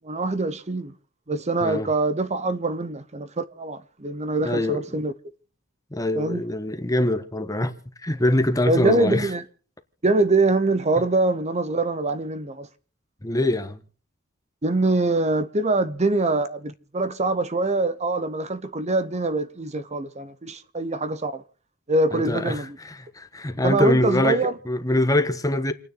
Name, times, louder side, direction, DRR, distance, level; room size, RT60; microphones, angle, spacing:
voice 1, 0.0-0.9 1.3-5.1 6.2-6.4 8.6-9.4 10.0-12.7 14.6-21.4 21.9-22.8 23.6-24.5, right 2 dB, 35° right, 0.9 m, -24 dB
voice 2, 4.4-4.8 5.9-7.7 8.0-9.3 13.2-13.8 22.1-25.7, left 1 dB, 15° left, 1.2 m, -24 dB
29.0 x 9.8 x 3.9 m
head